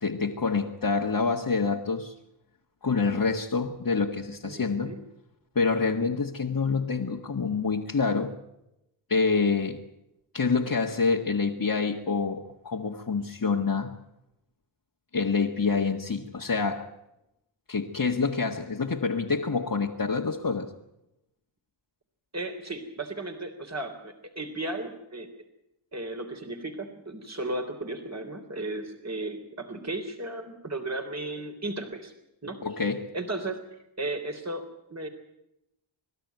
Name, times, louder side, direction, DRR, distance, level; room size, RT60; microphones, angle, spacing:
voice 1, 0.0-2.1 2.8-4.9 5.6-8.3 9.1-9.8 10.3-13.9 15.1-16.9 17.7-20.7 32.6-33.1, left 4 dB, 45° left, 1.8 m, -27 dB
voice 2, 4.4-5.0 22.3-25.3 25.9-32.1 32.4-32.6 33.1-33.6 34.0-34.6 34.9-35.1, right 2 dB, 35° right, 3.5 m, -35 dB
26.0 x 13.0 x 9.3 m
cardioid pair, 40°, 48 cm